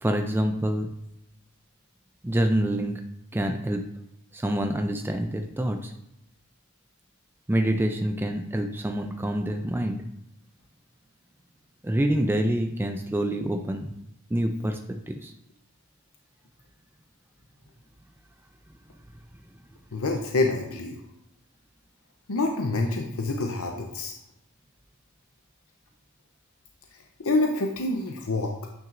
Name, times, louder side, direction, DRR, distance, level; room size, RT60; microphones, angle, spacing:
voice 1, 0.0-0.9 2.2-3.0 3.3-3.8 4.3-5.9 7.5-10.0 11.8-13.9 14.3-14.8 15.1-15.3, right 1 dB, 10° right, 5 dB, 0.4 m, -26 dB
voice 2, 19.9-21.0 22.3-24.1 27.2-28.5, left 2 dB, 75° left, 2 dB, 0.7 m, -26 dB
8.9 x 5.9 x 2.6 m, 0.82 s
head